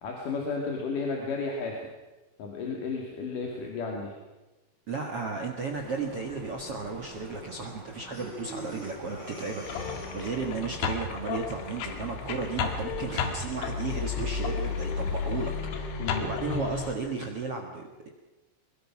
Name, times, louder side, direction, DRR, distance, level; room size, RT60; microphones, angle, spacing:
voice 1, 0.0-1.9 2.4-4.1 16.0-16.3, left 4 dB, 50° left, 0 dB, 3.4 m, -33 dB
voice 2, 4.9-18.1, right 4 dB, 60° right, 2 dB, 1.5 m, -34 dB
sound 1, 5.7-15.6, right 1 dB, 25° right, 4.7 m, -46 dB
Breathing, 8.1-10.7, equal, 25° left, 5.5 m, -43 dB
sound 2, 9.6-16.9, left 6 dB, 80° left, 4.4 m, -32 dB
22.5 x 22.5 x 6.1 m, 1.1 s
omnidirectional pair, 5.5 m